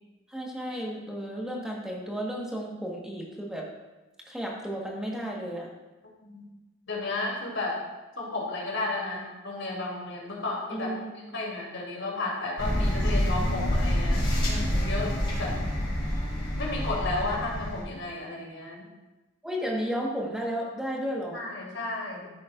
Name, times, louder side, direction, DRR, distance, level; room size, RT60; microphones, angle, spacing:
voice 1, 0.3-3.7 4.2-5.7 10.7-11.4 19.4-21.4, equal, 5° right, -2 dB, 1.3 m, -33 dB
voice 2, 6.9-7.8 8.2-10.9 11.3-14.2 14.5-15.1 15.4-15.5 16.6-18.8 21.3-22.3, left 2 dB, 90° left, -3 dB, 2.8 m, -33 dB
sound 1, 12.6-17.8, equal, 25° left, 2.5 m, -27 dB
13.0 x 7.3 x 2.5 m, 1.1 s
head